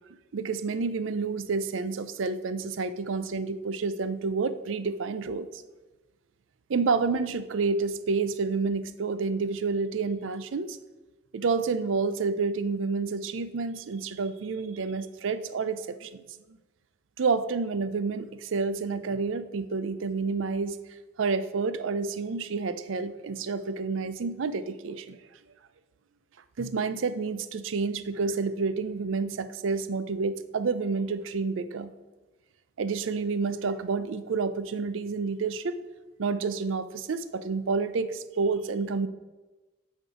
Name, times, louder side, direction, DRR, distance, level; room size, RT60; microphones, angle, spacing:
voice 1, 0.3-5.6 6.7-10.8 11.3-16.2 17.2-20.8 21.2-25.2 26.6-31.9 32.8-35.8 36.2-39.1, right 4 dB, 85° right, 13 dB, 0.5 m, -29 dB
7.9 x 4.4 x 4.9 m, 1.2 s
head